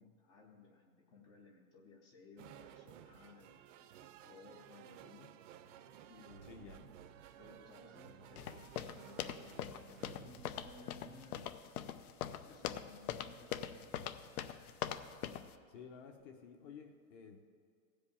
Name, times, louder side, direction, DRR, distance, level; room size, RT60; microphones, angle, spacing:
voice 1, 0.0-3.5 4.2-5.3 6.1-6.9 7.4-11.7 12.4-14.2, left 3 dB, 10° left, 3 dB, 0.4 m, -60 dB
sound 1, 2.4-10.3, right 10 dB, 60° right, 0.7 m, -57 dB
sound 2, 6.3-11.5, right 5 dB, 90° right, 1.1 m, -59 dB
voice 2, 6.5-6.8 15.7-17.4, left 6 dB, 40° left, 4 dB, 0.8 m, -53 dB
sound 3, 8.4-15.5, left 10 dB, 80° left, 0.8 m, -42 dB
15.5 x 5.2 x 8.5 m, 2.2 s
supercardioid pair, 160°, 43 cm